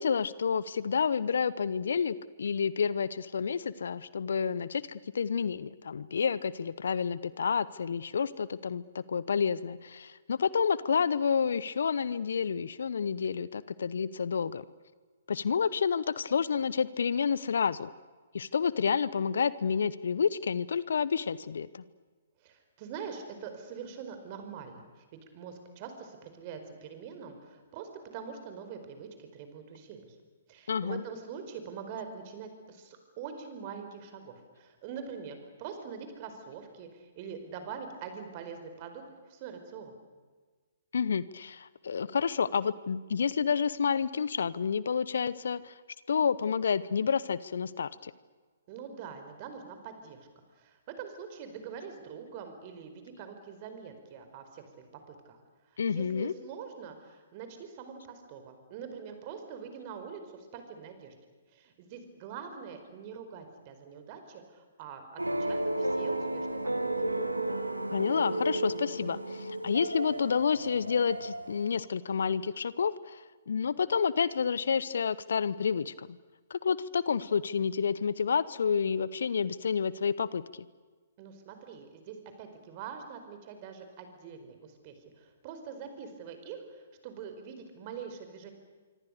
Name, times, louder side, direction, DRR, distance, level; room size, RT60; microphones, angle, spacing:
voice 1, 0.0-14.6 15.3-17.9 18.3-21.8 30.7-31.0 40.9-45.7 46.1-48.1 55.8-56.3 67.9-76.2 76.5-80.4, left 6 dB, 65° left, 19 dB, 0.9 m, -29 dB
voice 2, 22.4-25.0 25.3-30.2 30.5-40.0 48.7-50.3 50.5-54.6 55.1-55.4 55.7-61.1 61.5-66.6 67.0-67.1 81.2-88.5, right 6 dB, 35° right, 7 dB, 4.8 m, -44 dB
sound 1, 65.2-71.8, right 1 dB, 90° right, 1.9 m, -33 dB
26.0 x 25.0 x 6.7 m, 1.4 s
figure-of-eight pair, 125°, 0 cm